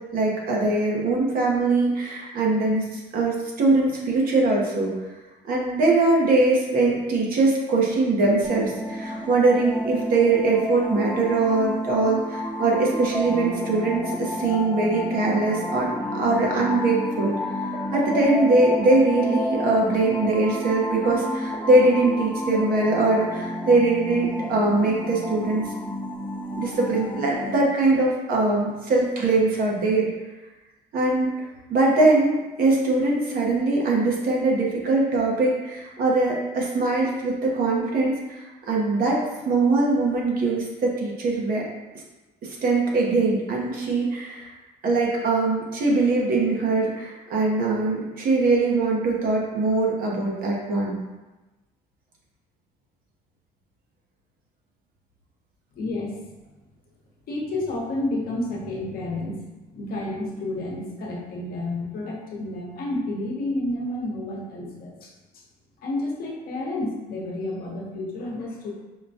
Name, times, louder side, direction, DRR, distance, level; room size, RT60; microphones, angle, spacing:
voice 1, 0.1-4.9 5.5-17.3 17.9-25.6 26.5-30.1 30.9-31.3 31.7-39.2 39.4-41.6 42.4-44.5 44.8-51.0, right 2 dB, 60° right, -2 dB, 0.9 m, -22 dB
sound 1, 8.4-27.6, equal, 5° left, 0.7 m, -30 dB
voice 2, 55.7-56.1 57.3-65.1 65.8-68.7, left 2 dB, 60° left, -2 dB, 0.9 m, -30 dB
4.9 x 2.3 x 2.7 m, 1.1 s
cardioid pair, 110°, 17 cm